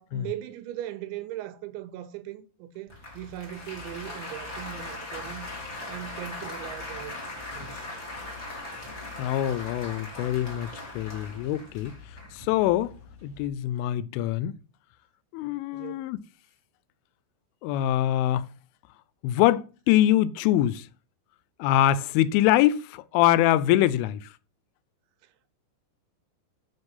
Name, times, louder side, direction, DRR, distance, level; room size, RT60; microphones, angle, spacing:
voice 1, 0.0-5.5 5.9-7.2 7.5-7.9 15.7-16.1 25.2-25.5, right 12 dB, 80° right, 2.8 m, -39 dB
Applause, 2.9-13.5, left 2 dB, 20° left, 1.9 m, -40 dB
voice 2, 9.2-12.0 12.3-12.9 13.2-14.6 15.3-16.2 17.6-18.5 19.2-20.9 21.6-24.3, left 13 dB, 90° left, 3.1 m, -24 dB
8.0 x 6.2 x 5.4 m
omnidirectional pair, 5.5 m